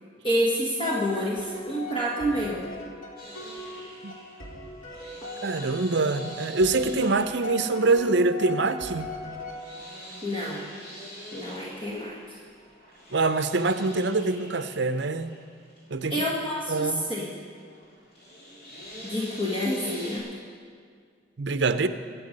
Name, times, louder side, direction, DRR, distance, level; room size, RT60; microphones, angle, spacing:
voice 1, 0.2-2.7 10.2-10.6 11.3-12.4 16.1-17.4 19.0-20.3, equal, 25° left, -4 dB, 1.4 m, -28 dB
sound 1, 0.8-10.1, left 1 dB, 90° left, 2.9 m, -40 dB
sound 2, 3.2-20.2, equal, 50° left, 3.3 m, -45 dB
voice 2, 5.4-9.1 13.1-15.4 15.9-16.1 16.7-17.1 21.4-21.9, right 3 dB, 60° right, 10 dB, 0.6 m, -25 dB
23.0 x 7.8 x 5.4 m, 2.1 s
head